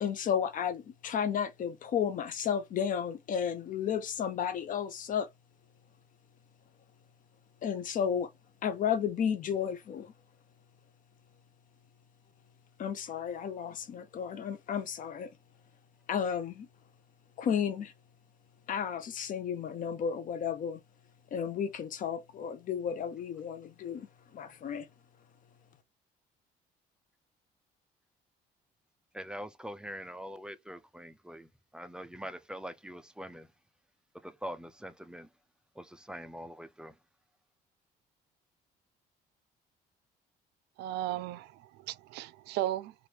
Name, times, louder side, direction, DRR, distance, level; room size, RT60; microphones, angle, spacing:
voice 1, 0.0-5.3 7.6-8.3 8.6-10.1 12.8-15.3 16.1-16.7 17.4-17.9 18.7-20.8 21.3-24.1 24.3-24.8, left 8 dB, 50° left, 0.7 m, -33 dB
voice 2, 29.1-31.5 31.7-33.5 34.2-35.3 35.8-36.9, equal, 5° right, 0.4 m, -43 dB
voice 3, 40.8-42.9, right 14 dB, 80° right, 0.4 m, -35 dB
3.3 x 2.5 x 2.8 m
cardioid pair, 110°, 17 cm